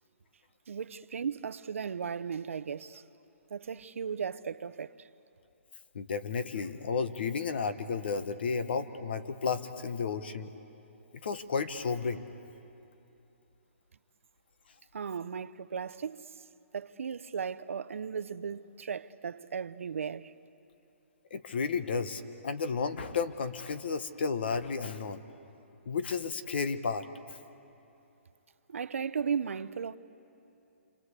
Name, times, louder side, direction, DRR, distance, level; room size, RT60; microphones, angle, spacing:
voice 1, 0.7-3.0 3.5-5.1 14.9-16.4 16.7-20.3 28.7-30.0, right 6 dB, 75° right, 0.7 m, -36 dB
voice 2, 5.9-10.5 11.2-12.3 21.3-25.2 25.8-27.1, left 5 dB, 50° left, 1.2 m, -32 dB
28.5 x 25.0 x 8.2 m
hypercardioid pair, 175°, 7 cm